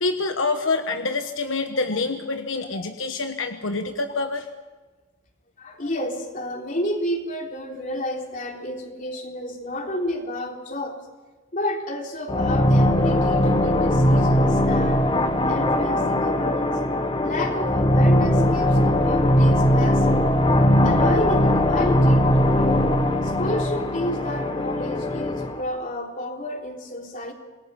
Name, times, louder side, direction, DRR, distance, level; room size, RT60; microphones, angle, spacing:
voice 1, 0.0-4.5, left 3 dB, 80° left, 6 dB, 1.3 m, -26 dB
voice 2, 5.6-11.0 11.5-15.1 15.5-16.7 17.2-20.2 20.8-22.8 23.2-27.3, left 1 dB, 45° left, 2 dB, 3.5 m, -30 dB
sound 1, 12.3-25.6, left 1 dB, 25° left, 1.5 m, -20 dB
27.5 x 20.5 x 5.9 m, 1.3 s
head